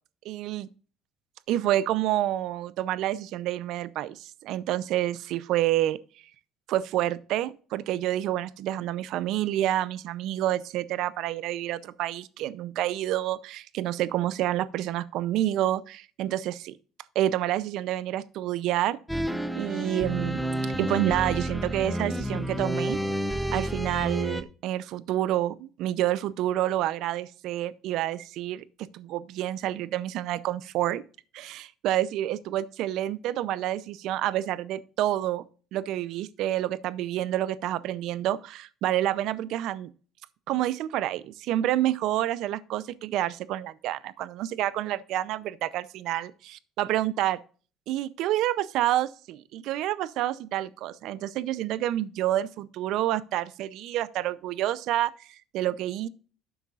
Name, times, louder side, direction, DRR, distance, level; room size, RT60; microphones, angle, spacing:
voice 1, 0.2-0.7 1.5-6.0 6.7-16.7 17.1-19.0 19.6-23.0 23.5-28.6 28.9-31.0 31.3-35.4 35.7-39.9 40.5-47.4 47.9-55.3 55.5-56.1, right 13 dB, 65° right, 0.5 m, -28 dB
sound 1, 19.1-24.4, equal, ahead, 0.5 m, -30 dB
11.5 x 8.0 x 2.4 m
cardioid pair, 145°, 0 cm